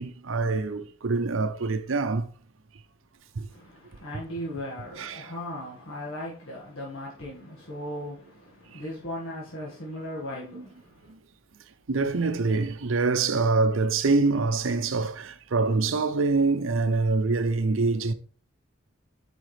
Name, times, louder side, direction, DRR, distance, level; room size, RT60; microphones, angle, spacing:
voice 1, 0.0-2.3 3.4-3.5 5.0-5.3 8.7-8.8 11.9-18.1, right 3 dB, 65° right, 0.6 m, -25 dB
voice 2, 3.5-11.1, left 1 dB, 70° left, 1.7 m, -37 dB
9.0 x 5.0 x 3.2 m
head